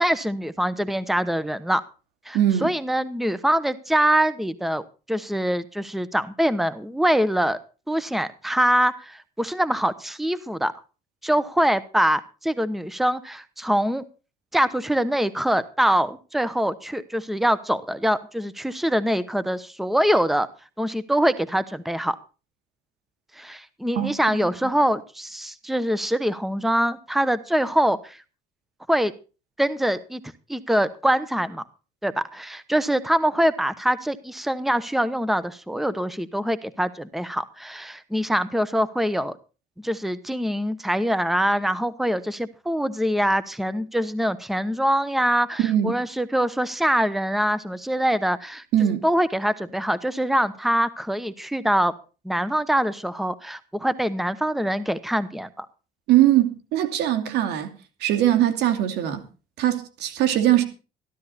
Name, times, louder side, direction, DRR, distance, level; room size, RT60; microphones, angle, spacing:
voice 1, 0.0-1.8 2.2-4.8 5.1-7.6 7.9-10.7 11.2-14.0 14.5-20.5 20.8-22.2 23.3-28.2 28.9-29.1 29.6-30.2 30.5-31.6 32.0-39.4 39.8-51.9 52.2-55.7, equal, ahead, 0.9 m, -24 dB
voice 2, 2.3-2.7 24.0-24.1 45.6-46.0 48.7-49.0 56.1-57.7 58.0-59.2 59.6-60.6, right 12 dB, 85° right, 2.6 m, -21 dB
14.0 x 13.0 x 4.2 m
cardioid pair, 110°, 17 cm